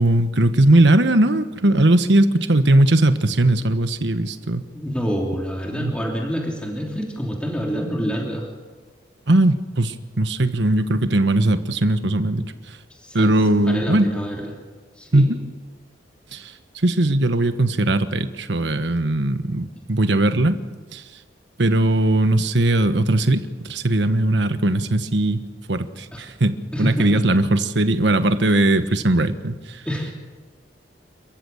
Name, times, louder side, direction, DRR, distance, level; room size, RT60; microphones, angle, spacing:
voice 1, 0.0-4.7 5.7-5.9 9.3-12.5 13.1-14.1 15.1-15.4 16.3-16.5 16.8-20.6 20.9-21.0 21.6-25.4 25.7-29.8, right 1 dB, 85° right, 10 dB, 1.3 m, -19 dB
voice 2, 4.7-8.5 13.0-14.5 15.0-15.3 26.1-26.2 26.7-27.2 29.8-30.1, equal, 5° left, -1 dB, 3.1 m, -27 dB
28.5 x 15.0 x 7.2 m, 1.3 s
head